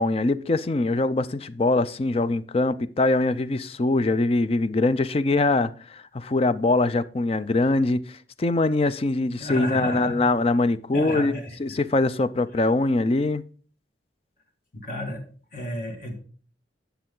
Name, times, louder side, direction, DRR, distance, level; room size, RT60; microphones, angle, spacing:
voice 1, 0.0-13.4, left 2 dB, 35° left, 0.4 m, -23 dB
voice 2, 9.4-10.2 10.9-11.8 14.7-15.2 15.5-16.2, left 1 dB, 50° left, 1.9 m, -31 dB
10.0 x 6.9 x 3.7 m
head